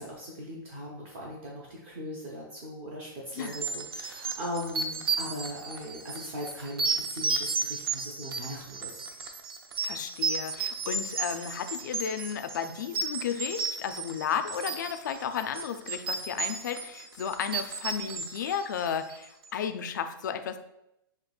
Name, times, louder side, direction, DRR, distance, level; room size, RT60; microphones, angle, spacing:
voice 1, 0.0-9.0, equal, 30° right, -3 dB, 0.6 m, -39 dB
sound 1, 3.4-19.2, right 4 dB, 85° right, 0.6 m, -33 dB
voice 2, 9.8-20.6, left 8 dB, 55° left, 9 dB, 0.4 m, -33 dB
5.8 x 2.8 x 2.3 m, 0.84 s
hypercardioid pair, 175°, 12 cm